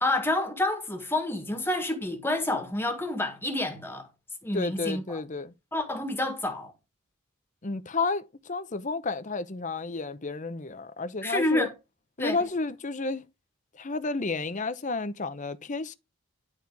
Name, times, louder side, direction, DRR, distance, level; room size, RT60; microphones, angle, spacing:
voice 1, 0.0-4.1 4.4-5.2 5.7-6.7 11.2-11.7 12.2-12.4, left 1 dB, 10° left, 1.6 m, -28 dB
voice 2, 4.5-5.5 7.6-11.7 12.2-13.2 13.8-15.9, left 3 dB, 35° left, 0.7 m, -31 dB
11.5 x 4.4 x 4.6 m
head